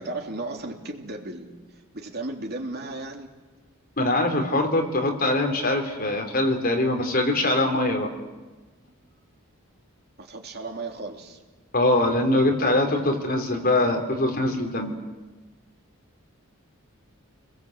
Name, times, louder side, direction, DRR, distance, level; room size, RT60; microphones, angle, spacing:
voice 1, 0.0-1.5 1.9-3.3 10.2-11.4, right 2 dB, 45° right, 2 dB, 3.3 m, -35 dB
voice 2, 4.0-8.1 11.7-15.0, left 1 dB, 40° left, 3 dB, 4.0 m, -23 dB
30.0 x 21.5 x 8.2 m, 1.2 s
head